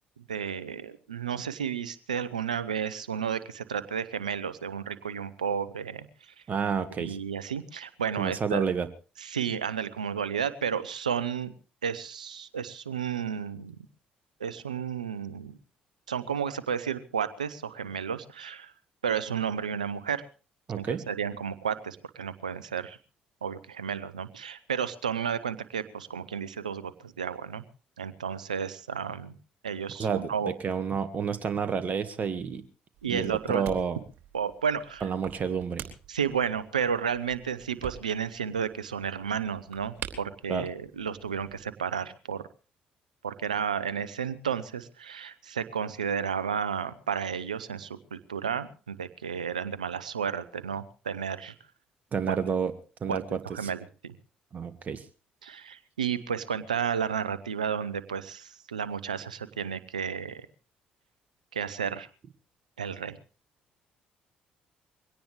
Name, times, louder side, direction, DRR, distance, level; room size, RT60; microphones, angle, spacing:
voice 1, 0.2-6.3 7.0-8.6 9.2-11.5 11.8-13.8 14.4-15.6 16.1-18.7 19.0-20.2 20.8-23.0 23.4-27.6 28.0-29.3 29.6-30.5 33.0-33.6 34.3-35.1 36.1-42.4 43.2-51.5 52.3-52.4 53.1-53.2 53.5-54.1 55.4-60.5 61.5-62.1 62.8-63.2, right 7 dB, 90° right, 15 dB, 0.9 m, -32 dB
voice 2, 6.5-7.2 8.2-8.9 20.7-21.0 30.0-32.6 33.1-34.0 35.0-35.8 40.5-40.6 52.1-52.7 53.0-53.7 54.5-55.0, right 6 dB, 45° right, 10 dB, 1.7 m, -30 dB
sound 1, 32.9-41.7, right 10 dB, 60° right, 3.5 m, -46 dB
22.5 x 17.5 x 3.3 m, 0.38 s
hypercardioid pair, 50°, 4 cm